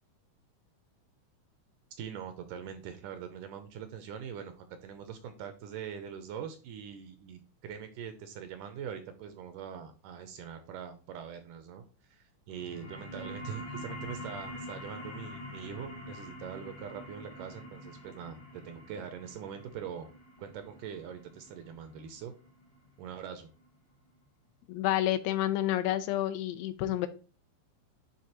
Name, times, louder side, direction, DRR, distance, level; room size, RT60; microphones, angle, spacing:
voice 1, 2.0-11.8 12.1-20.1 20.4-22.3 23.0-23.5, right 8 dB, 80° right, 2.0 m, -43 dB
sound 1, 12.5-23.6, left 1 dB, 50° left, 1.1 m, -45 dB
voice 2, 24.7-27.1, left 13 dB, 80° left, 2.2 m, -29 dB
9.7 x 3.5 x 2.9 m
omnidirectional pair, 4.1 m